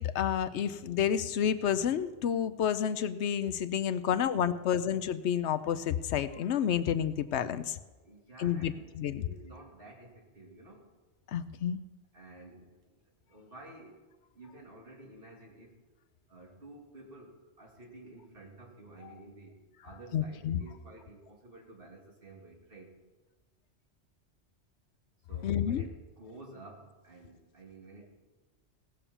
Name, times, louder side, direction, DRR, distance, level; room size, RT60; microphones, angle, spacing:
voice 1, 0.0-7.8 8.4-9.3 11.3-11.8 20.1-20.6 25.4-25.8, left 9 dB, 80° left, 14 dB, 0.9 m, -30 dB
voice 2, 8.0-9.0 9.2-10.8 12.1-12.6 13.3-14.0 14.4-15.7 16.3-17.3 17.6-19.5 19.8-22.9 25.3-28.1, right 2 dB, 55° right, -1 dB, 2.9 m, -51 dB
17.5 x 7.0 x 7.1 m, 1.2 s
omnidirectional pair, 1.2 m